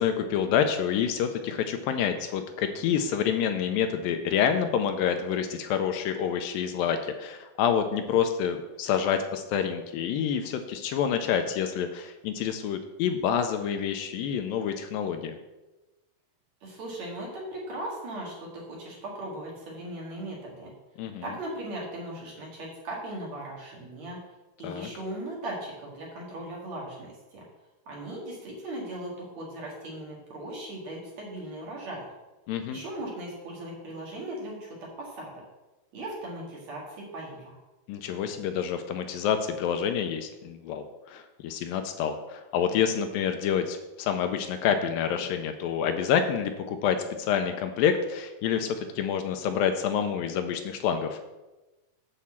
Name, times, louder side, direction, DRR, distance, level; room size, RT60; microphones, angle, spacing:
voice 1, 0.0-15.4 21.0-21.3 24.6-24.9 32.5-32.8 37.9-51.2, left 8 dB, 80° left, 7 dB, 2.2 m, -28 dB
voice 2, 16.6-20.7 21.2-24.2 24.6-27.4 27.9-32.0 32.7-35.3 35.9-37.6, right 1 dB, 55° right, -3 dB, 2.8 m, -38 dB
8.4 x 4.3 x 7.2 m, 1.1 s
omnidirectional pair, 4.3 m